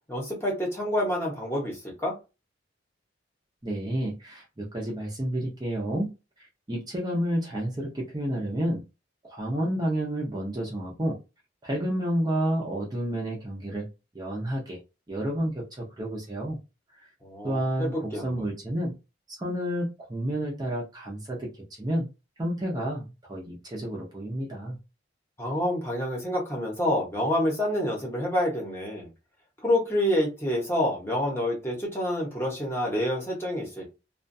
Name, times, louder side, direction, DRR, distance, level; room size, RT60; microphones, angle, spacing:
voice 1, 0.1-2.2 17.2-18.3 25.4-29.1 29.6-33.9, left 1 dB, 15° left, -2 dB, 0.9 m, -28 dB
voice 2, 3.6-6.1 6.4-8.8 9.3-11.2 11.6-13.9 14.1-14.8 15.1-16.6 17.4-18.9 19.3-22.1 22.4-24.8, right 1 dB, 20° right, -3 dB, 0.6 m, -30 dB
2.4 x 2.2 x 2.6 m, 0.28 s
head